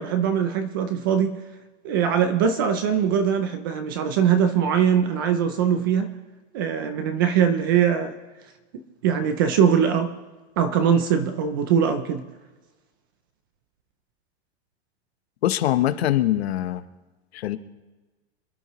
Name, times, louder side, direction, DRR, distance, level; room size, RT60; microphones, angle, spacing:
voice 1, 0.0-1.3 1.8-6.1 6.5-8.1 9.0-10.1 10.6-12.2, right 8 dB, 20° right, 9 dB, 0.4 m, -21 dB
voice 2, 15.4-16.8 17.3-17.6, left 13 dB, 65° left, 11 dB, 0.9 m, -23 dB
26.5 x 11.0 x 3.1 m, 1.2 s
supercardioid pair, 180°, 34 cm